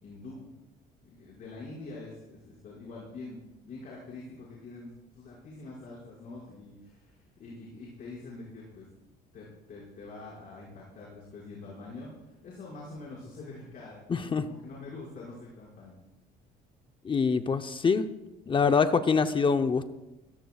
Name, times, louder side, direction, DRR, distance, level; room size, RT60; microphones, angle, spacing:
voice 1, 0.0-0.5 1.0-8.9 9.3-15.9, left 3 dB, 55° left, -6 dB, 5.8 m, -45 dB
voice 2, 14.1-14.5 17.0-18.1 18.5-19.9, left 5 dB, 30° left, 8 dB, 0.8 m, -25 dB
21.0 x 17.5 x 2.4 m, 1.0 s
cardioid pair, 110°, 17 cm